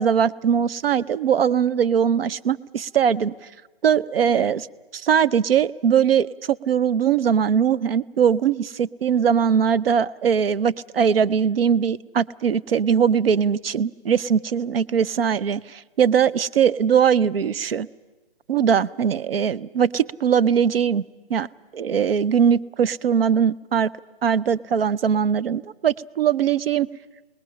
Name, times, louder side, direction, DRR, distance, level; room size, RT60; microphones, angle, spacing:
voice 1, 0.0-3.3 3.8-4.7 4.9-17.9 18.5-21.0 21.3-21.5 21.7-23.9 24.2-26.9, right 7 dB, 70° right, 19 dB, 0.6 m, -21 dB
28.5 x 20.0 x 5.7 m, 1.2 s
hypercardioid pair, 165°, 30 cm